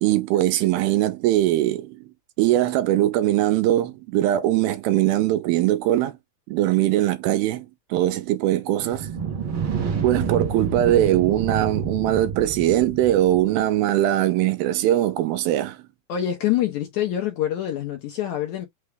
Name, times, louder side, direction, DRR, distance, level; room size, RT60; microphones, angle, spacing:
voice 1, 0.0-2.0 2.4-6.2 6.5-9.1 10.0-15.8, right 13 dB, 85° right, 2.5 m, -21 dB
sound 1, 8.8-13.6, right 6 dB, 65° right, 1.2 m, -29 dB
voice 2, 16.1-18.7, left 11 dB, 75° left, 1.8 m, -25 dB
5.9 x 2.2 x 3.3 m
omnidirectional pair, 4.3 m